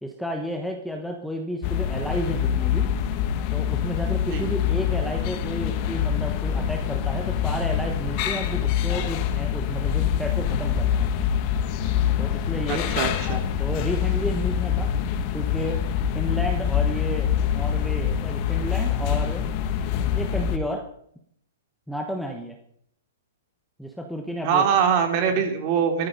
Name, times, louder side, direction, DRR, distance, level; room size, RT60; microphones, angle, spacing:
voice 1, 0.0-2.9 3.5-11.1 12.2-12.9 13.3-14.9 15.3-15.8 16.1-19.5 20.1-20.8 21.9-22.6 23.8-24.6, equal, ahead, 2 dB, 1.2 m, -32 dB
sound 1, 1.6-20.6, left 9 dB, 30° left, 1.3 m, -25 dB
voice 2, 12.7-13.4 24.4-26.1, right 7 dB, 30° right, 4 dB, 3.3 m, -23 dB
14.0 x 14.0 x 5.3 m, 0.68 s
hypercardioid pair, 165°, 0 cm